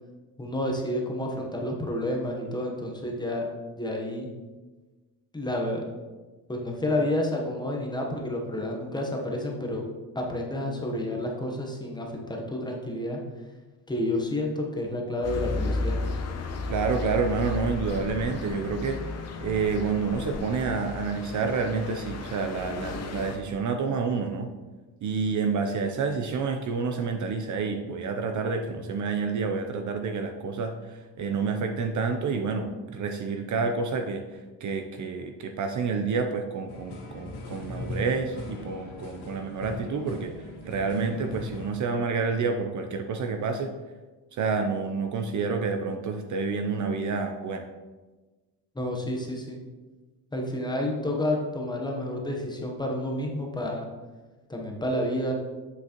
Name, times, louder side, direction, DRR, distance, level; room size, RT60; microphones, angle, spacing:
voice 1, 0.4-3.4 3.8-4.3 5.3-5.9 6.5-9.8 10.1-13.2 13.9-16.0 48.7-49.6 50.3-53.9 54.5-55.3, left 1 dB, 10° left, 0 dB, 0.9 m, -30 dB
sound 1, 15.2-23.4, left 3 dB, 40° left, 0.7 m, -33 dB
voice 2, 16.7-19.0 19.4-24.5 25.0-34.2 34.6-40.3 40.6-43.7 44.3-47.7, right 4 dB, 45° right, 6 dB, 0.5 m, -29 dB
sound 2, 36.7-41.7, left 2 dB, 65° left, 1.7 m, -39 dB
7.7 x 6.0 x 2.9 m, 1.2 s
cardioid pair, 150°, 42 cm